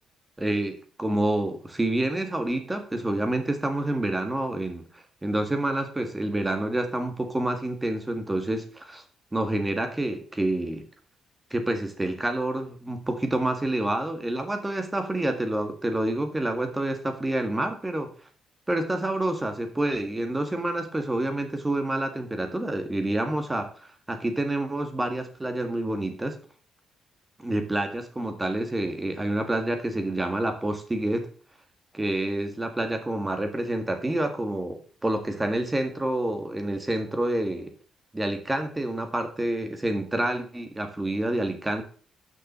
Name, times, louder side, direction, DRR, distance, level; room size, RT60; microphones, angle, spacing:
voice 1, 0.4-9.0 9.3-10.8 11.5-18.1 18.7-23.7 24.1-26.4 27.4-31.3 31.9-37.7 38.1-41.8, right 1 dB, 15° right, 6 dB, 1.8 m, -28 dB
6.3 x 6.0 x 6.5 m, 0.41 s
cardioid pair, 90°, 0 cm